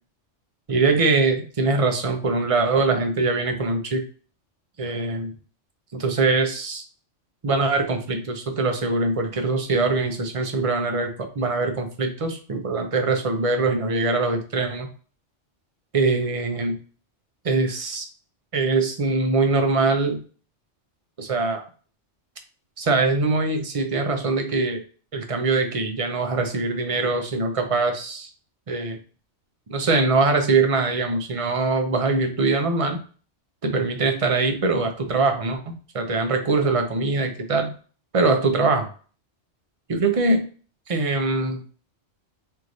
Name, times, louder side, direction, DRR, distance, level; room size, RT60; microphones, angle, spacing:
voice 1, 0.7-4.0 4.8-5.3 5.9-6.8 7.4-11.1 11.3-14.9 15.9-16.8 17.4-18.1 18.5-20.2 21.2-21.6 22.8-24.8 25.1-28.3 28.7-29.0 29.7-33.0 33.6-35.6 35.9-37.7 38.1-38.9 39.9-40.5 40.9-41.6, right 3 dB, 35° right, 5 dB, 0.7 m, -22 dB
4.4 x 3.2 x 2.6 m, 0.39 s
omnidirectional pair, 1.2 m